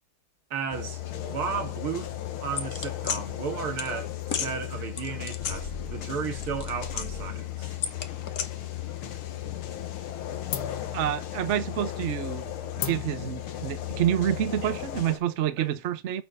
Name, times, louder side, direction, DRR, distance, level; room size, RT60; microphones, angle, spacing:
voice 1, 0.5-1.0 1.3-2.1 2.4-7.8 14.6-14.7 15.6-15.7, right 6 dB, 80° right, 2.5 m, -34 dB
sound 1, 0.7-15.2, left 12 dB, 85° left, 2.0 m, -36 dB
sound 2, 2.6-3.2 3.8-3.9 4.3-4.5 5.0-6.1 6.4-7.3 7.8-8.5, left 7 dB, 50° left, 1.3 m, -33 dB
sound 3, 10.5-15.7, left 10 dB, 65° left, 1.5 m, -40 dB
voice 2, 10.9-12.5 12.8-16.2, right 11 dB, 60° right, 0.7 m, -28 dB
8.8 x 4.4 x 6.7 m
omnidirectional pair, 2.3 m